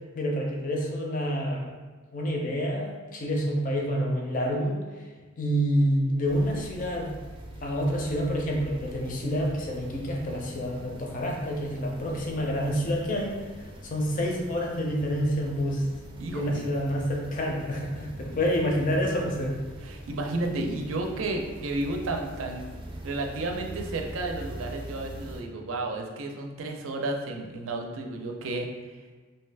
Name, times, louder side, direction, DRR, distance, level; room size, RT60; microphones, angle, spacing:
voice 1, 0.1-1.7 2.1-5.0 5.4-7.1 7.6-15.9 16.3-19.5, equal, 40° left, -1 dB, 0.5 m, -28 dB
sound 1, 6.2-25.4, right 1 dB, 25° right, 0.4 m, -43 dB
voice 2, 16.2-16.6 19.8-22.7 23.0-28.7, right 2 dB, 80° right, 2 dB, 0.4 m, -32 dB
2.7 x 2.3 x 3.3 m, 1.4 s
head